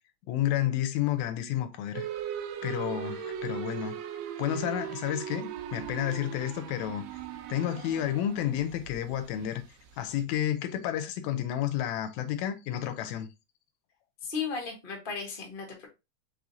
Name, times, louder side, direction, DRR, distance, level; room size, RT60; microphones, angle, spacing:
voice 1, 0.3-2.1 2.6-4.0 4.4-7.1 7.5-9.6 10.0-13.3, left 11 dB, 80° left, 1.9 m, -31 dB
sound 1, 1.9-10.2, right 10 dB, 80° right, 1.8 m, -39 dB
voice 2, 14.2-15.9, left 5 dB, 40° left, 0.7 m, -35 dB
4.9 x 3.5 x 2.6 m
omnidirectional pair, 3.4 m